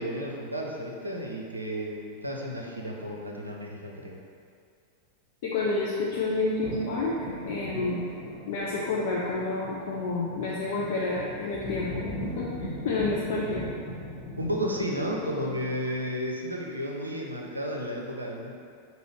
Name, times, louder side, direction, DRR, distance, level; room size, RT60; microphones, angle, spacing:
voice 1, 0.0-4.2 14.4-18.5, equal, 80° right, -1 dB, 0.5 m, -33 dB
voice 2, 5.4-7.2 7.5-8.0 8.5-12.0 12.4-13.6, left 3 dB, 55° left, -5 dB, 0.5 m, -29 dB
sound 1, 5.6-16.0, left 1 dB, 20° left, 1.1 m, -39 dB
5.5 x 2.7 x 3.1 m, 2.3 s
figure-of-eight pair, 90°, 0 cm